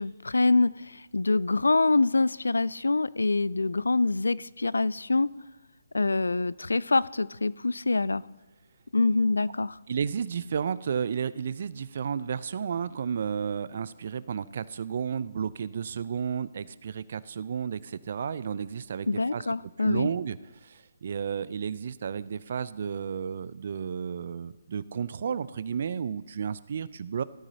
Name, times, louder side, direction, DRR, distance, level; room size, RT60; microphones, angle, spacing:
voice 1, 0.0-5.3 5.9-8.2 8.9-9.8 19.1-20.1, left 3 dB, 80° left, 21 dB, 0.3 m, -25 dB
voice 2, 9.9-19.5 19.8-27.2, right 7 dB, 50° right, 17 dB, 0.4 m, -32 dB
17.5 x 13.0 x 2.8 m, 1.2 s
figure-of-eight pair, 145°, 0 cm